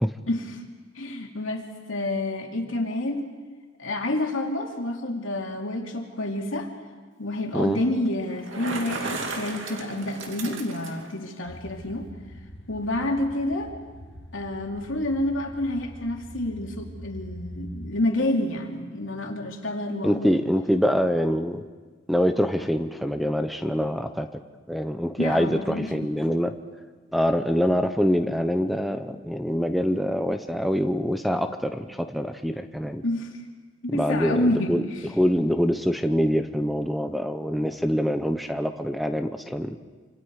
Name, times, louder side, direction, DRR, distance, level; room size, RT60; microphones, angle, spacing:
voice 1, 0.3-0.6 0.9-3.3 3.8-6.7 7.2-12.1 12.7-13.7 14.3-20.3 25.2-26.1 33.0-33.3 33.8-35.1, left 1 dB, 85° left, 1 dB, 2.9 m, -28 dB
Bicycle, 8.3-11.1, right 3 dB, 75° right, 2.6 m, -34 dB
sound 1, 11.4-17.9, equal, 65° left, 1.8 m, -43 dB
voice 2, 20.0-21.6 22.1-24.3 24.7-26.5 27.1-33.0 33.9-34.8 35.1-39.8, equal, ahead, 8 dB, 0.7 m, -25 dB
27.0 x 26.0 x 4.9 m, 1.4 s
head